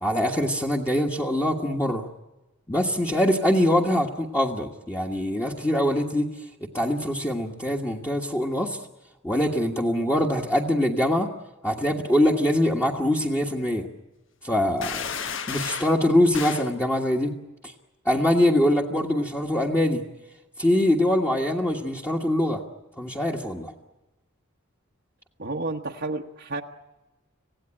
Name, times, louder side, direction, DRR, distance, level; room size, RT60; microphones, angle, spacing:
voice 1, 0.0-2.1 2.7-6.3 6.7-8.8 9.2-11.3 11.6-13.9 14.4-15.1 15.5-17.3 17.6-17.7 18.0-20.0 20.6-22.6 23.0-23.7, left 1 dB, 10° left, -2 dB, 1.5 m, -23 dB
sound 1, 14.8-16.0 16.3-16.7, left 6 dB, 65° left, 1.2 m, -32 dB
voice 2, 25.4-26.6, right 2 dB, 55° right, 0 dB, 1.1 m, -31 dB
26.5 x 17.0 x 10.0 m, 1.0 s
head